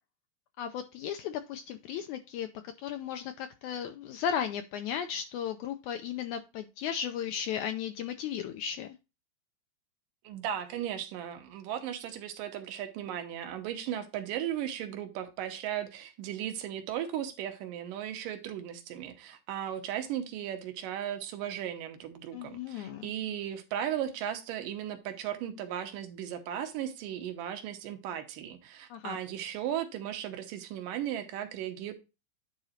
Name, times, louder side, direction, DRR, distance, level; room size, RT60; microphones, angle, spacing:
voice 1, 0.6-2.5 2.8-9.0 22.3-23.1 28.9-29.2, left 8 dB, 80° left, 1.8 m, -35 dB
voice 2, 10.2-31.9, right 10 dB, 80° right, 2.6 m, -36 dB
9.9 x 3.9 x 4.3 m
omnidirectional pair, 3.9 m